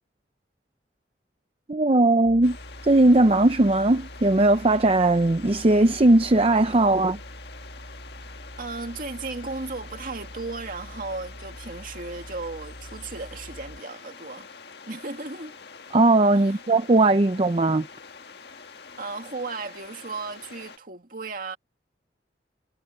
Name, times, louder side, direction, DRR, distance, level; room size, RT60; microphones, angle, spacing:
voice 1, 1.7-2.6 2.8-7.2 15.9-17.9, right 2 dB, 35° right, 0.6 m, -19 dB
sound 1, 2.2-13.8, equal, 75° right, 4.3 m, -44 dB
sound 2, 2.4-20.8, left 5 dB, 65° left, 1.8 m, -46 dB
voice 2, 8.6-14.5 14.9-15.6 16.4-16.6 19.0-21.6, right 3 dB, 50° right, 2.3 m, -35 dB
head